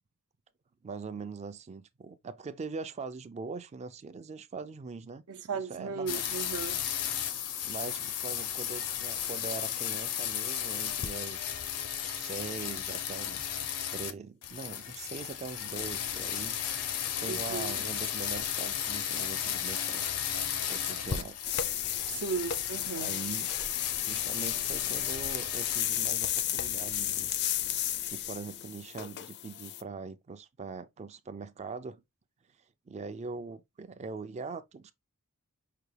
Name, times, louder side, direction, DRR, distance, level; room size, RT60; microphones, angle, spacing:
voice 1, 0.8-5.2 5.5-6.2 7.6-11.5 12.0-13.5 13.9-16.9 17.1-20.1 20.7-21.4 22.8-23.5 24.1-27.6 28.1-32.0 32.9-34.9, right 4 dB, 30° right, 0.3 m, -42 dB
voice 2, 5.3-6.8 17.3-17.9 22.1-23.1, right 5 dB, 75° right, 0.8 m, -36 dB
sound 1, 6.1-14.1 14.4-25.8, left 9 dB, 90° left, 0.6 m, -34 dB
sound 2, 21.4-29.8, left 11 dB, 50° left, 0.4 m, -33 dB
5.7 x 2.2 x 3.3 m
head